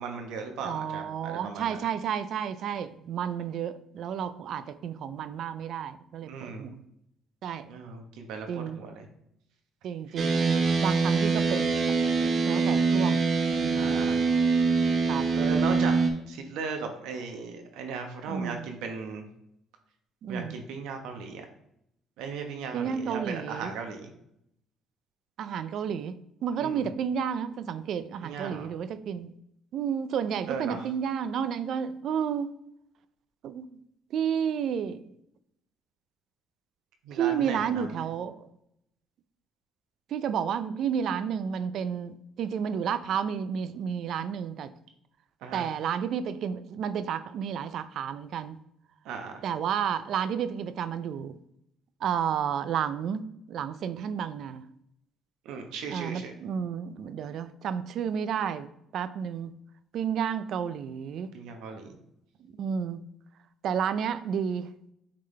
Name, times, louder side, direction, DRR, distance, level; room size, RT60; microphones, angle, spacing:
voice 1, 0.0-1.8 6.2-6.7 7.7-9.1 13.7-14.2 15.3-15.9 16.3-19.3 20.3-21.4 22.2-24.1 26.6-26.9 28.2-28.7 30.5-30.9 37.0-37.9 45.4-45.7 49.0-49.4 55.4-56.3 61.3-61.9, right 5 dB, 85° right, 1.1 m, -37 dB
voice 2, 0.6-6.8 7.4-7.7 8.5-8.8 9.8-11.9 12.2-13.3 13.5-14.1 15.1-15.3 18.3-18.7 20.2-20.6 22.7-23.7 25.4-29.3 29.7-32.5 33.4-33.7 34.1-35.0 37.1-38.4 40.1-44.7 45.5-48.6 49.4-51.3 52.0-54.6 55.9-59.5 59.9-61.3 62.6-63.0 63.6-64.7, right 8 dB, 65° right, 0.5 m, -31 dB
sound 1, 10.2-16.1, right 4 dB, 45° right, 1.2 m, -24 dB
8.6 x 3.8 x 3.3 m
cardioid pair, 110°, 0 cm